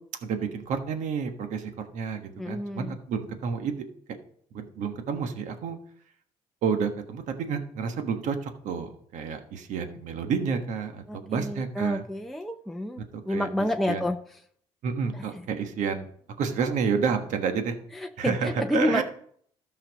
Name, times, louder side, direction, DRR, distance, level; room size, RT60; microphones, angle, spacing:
voice 1, 0.2-3.8 4.5-5.8 6.6-12.0 13.0-13.5 13.9-14.0 14.8-16.1 16.4-17.8 18.2-19.0, right 6 dB, 70° right, 7 dB, 1.3 m, -30 dB
voice 2, 2.4-3.0 11.1-14.2 15.1-15.3 17.9-19.0, left 1 dB, ahead, 3 dB, 0.6 m, -29 dB
13.0 x 5.7 x 5.2 m, 0.63 s
cardioid pair, 90°, 13 cm